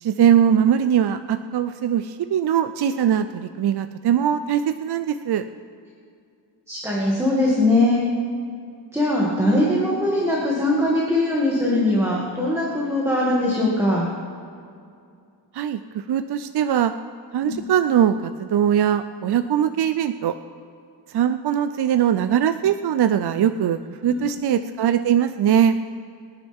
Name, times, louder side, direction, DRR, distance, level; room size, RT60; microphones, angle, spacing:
voice 1, 0.0-5.4 15.5-16.9 17.3-20.4 21.1-25.8, right 9 dB, 60° right, 10 dB, 0.5 m, -21 dB
voice 2, 6.7-8.0 8.9-14.1 17.4-17.6 24.0-24.5, left 1 dB, 5° right, -6 dB, 2.2 m, -21 dB
25.0 x 10.0 x 3.6 m, 2.4 s
wide cardioid pair, 135°, 45 cm